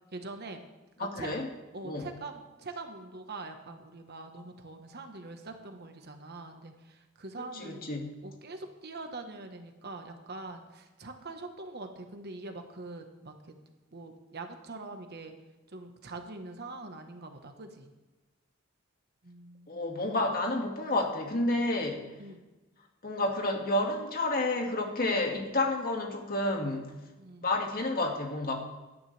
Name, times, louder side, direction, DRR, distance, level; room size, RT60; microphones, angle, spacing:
voice 1, 0.1-0.6 1.0-1.3 1.7-7.8 8.2-13.3 13.9-15.3 15.7-17.9 19.2-19.8 22.2-22.4 27.2-27.5, right 3 dB, 50° right, 5 dB, 1.3 m, -43 dB
voice 2, 1.0-1.5 1.8-2.1 7.5-8.1 19.7-22.0 23.0-26.9 27.4-28.5, left 2 dB, 45° left, 1 dB, 2.1 m, -30 dB
17.5 x 12.5 x 3.4 m, 1.1 s
head